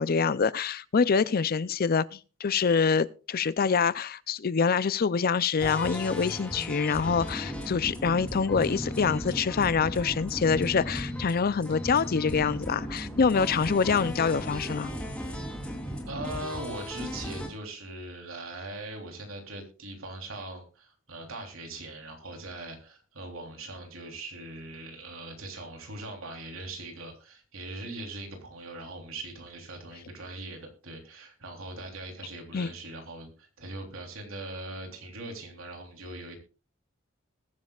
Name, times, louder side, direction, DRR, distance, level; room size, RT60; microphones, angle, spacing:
voice 1, 0.0-14.9 32.5-32.7, left 5 dB, 45° left, 0.5 m, -25 dB
sound 1, 5.6-17.5, equal, 5° left, 3.2 m, -36 dB
voice 2, 16.1-36.4, right 2 dB, 85° right, 3.4 m, -41 dB
21.0 x 9.5 x 2.4 m
head